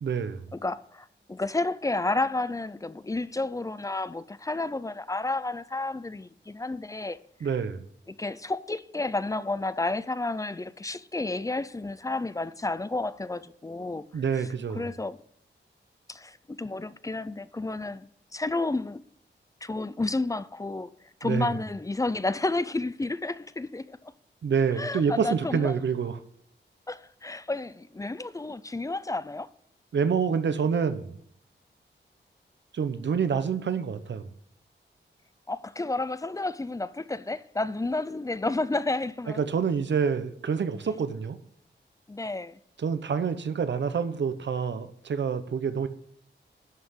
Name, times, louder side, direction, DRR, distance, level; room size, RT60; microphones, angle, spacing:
voice 1, 0.0-0.4 7.4-7.8 14.1-14.9 21.2-21.5 24.4-26.2 29.9-31.2 32.7-34.3 39.4-41.4 42.8-45.9, right 6 dB, 70° right, 0.9 m, -27 dB
voice 2, 0.5-7.2 8.1-14.0 14.3-14.4 14.7-15.2 16.1-19.0 19.6-20.9 21.2-24.0 24.8-25.8 26.9-29.5 35.5-39.4 42.1-42.6, left 2 dB, 15° left, 0.5 m, -31 dB
11.0 x 5.9 x 6.4 m
wide cardioid pair, 125°, 19 cm